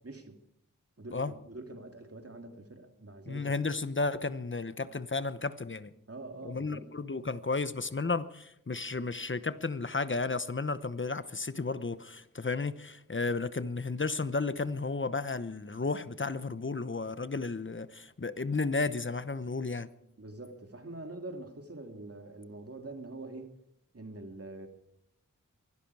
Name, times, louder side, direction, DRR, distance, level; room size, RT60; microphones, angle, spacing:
voice 1, 0.0-0.4 1.0-3.5 6.1-6.9 20.2-23.5 23.9-24.7, right 2 dB, 45° right, 2.6 m, -44 dB
voice 2, 3.3-5.9 6.4-19.9, left 3 dB, 40° left, 1.0 m, -33 dB
24.0 x 11.5 x 4.8 m
wide cardioid pair, 45°, 32 cm